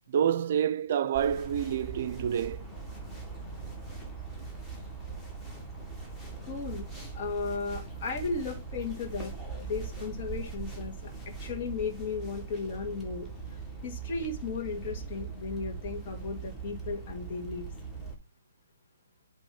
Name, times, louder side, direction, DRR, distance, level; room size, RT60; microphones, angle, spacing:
voice 1, 0.1-2.7, right 9 dB, 45° right, 0.5 m, -28 dB
sound 1, 1.1-18.1, right 4 dB, 5° left, 1.8 m, -41 dB
voice 2, 6.4-6.8 7.1-9.3 9.7-11.1 11.4-13.3 13.8-17.7, left 4 dB, 40° left, 2.2 m, -35 dB
8.0 x 3.5 x 6.1 m
figure-of-eight pair, 140°, 0 cm